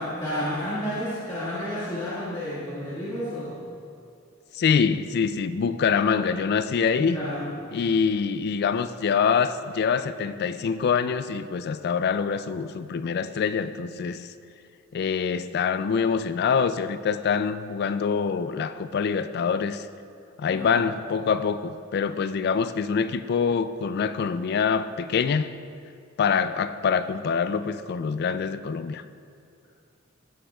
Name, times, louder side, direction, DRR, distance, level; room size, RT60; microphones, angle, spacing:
voice 1, 0.0-3.6 7.0-7.6 20.5-20.8, equal, 20° left, -11 dB, 1.7 m, -31 dB
voice 2, 4.5-7.2 7.7-14.3 14.9-19.9 20.4-25.5 26.2-29.0, left 6 dB, 50° left, 12 dB, 0.3 m, -25 dB
15.0 x 7.7 x 2.3 m, 2.4 s
head